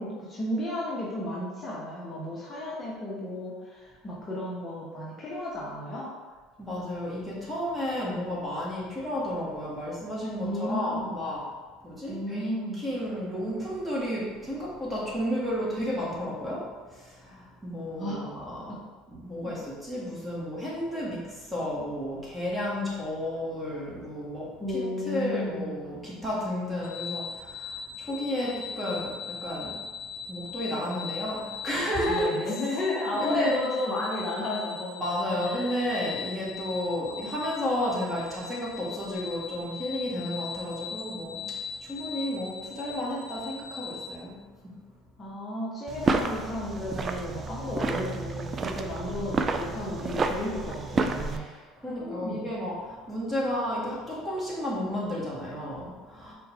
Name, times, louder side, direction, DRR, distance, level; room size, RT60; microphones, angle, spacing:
voice 1, 0.0-6.1 10.4-11.2 12.1-12.8 18.0-18.2 18.7-18.8 19.4-19.5 24.6-25.7 32.1-35.1 45.2-51.5 51.9-52.4, left 1 dB, 25° left, -6 dB, 0.9 m, -33 dB
voice 2, 6.6-11.5 11.8-18.8 19.1-29.8 30.3-32.3 33.1-33.6 35.0-44.4 44.6-44.7 51.3-56.3, left 1 dB, 5° right, -6 dB, 1.4 m, -32 dB
sound 1, 26.8-44.1, left 6 dB, 85° left, 0.5 m, -40 dB
sound 2, 45.9-51.4, right 4 dB, 35° right, 0.3 m, -30 dB
4.4 x 2.5 x 3.4 m, 1.4 s
supercardioid pair, 95°, 0 cm